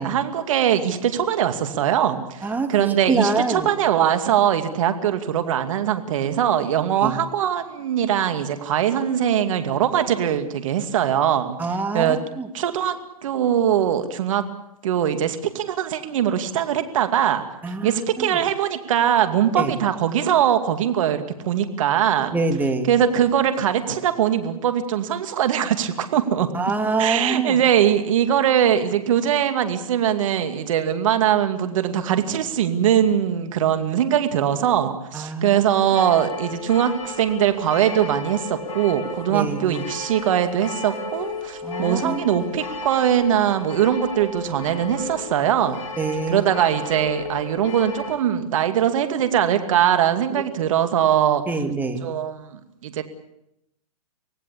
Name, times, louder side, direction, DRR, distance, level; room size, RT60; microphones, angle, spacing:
voice 1, 0.0-11.6 11.9-12.2 12.5-14.4 14.8-17.5 17.8-22.3 22.9-26.5 27.0-45.8 46.3-51.4 52.0-53.0, right 10 dB, 60° right, 8 dB, 2.4 m, -21 dB
voice 2, 2.4-3.7 7.0-7.2 11.6-12.5 17.6-18.4 19.6-19.7 22.3-22.9 26.5-27.6 35.1-35.6 39.3-39.8 41.6-42.2 46.0-46.5 51.5-52.1, right 3 dB, 10° right, 5 dB, 2.5 m, -25 dB
sound 1, 35.9-48.2, left 3 dB, 60° left, 4.7 m, -34 dB
25.5 x 18.0 x 8.5 m, 0.83 s
hypercardioid pair, 120°, 19 cm